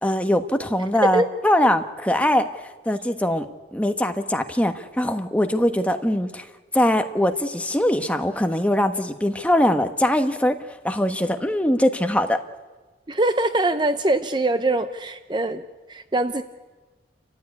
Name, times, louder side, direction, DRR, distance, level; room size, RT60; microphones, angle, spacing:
voice 1, 0.0-2.5 2.8-3.5 3.7-6.4 6.7-10.6 10.8-12.4, left 1 dB, 5° left, 7 dB, 1.2 m, -22 dB
voice 2, 13.1-15.6 15.9-16.4, right 2 dB, 25° right, 10 dB, 0.7 m, -23 dB
29.5 x 15.0 x 9.6 m, 1.3 s
head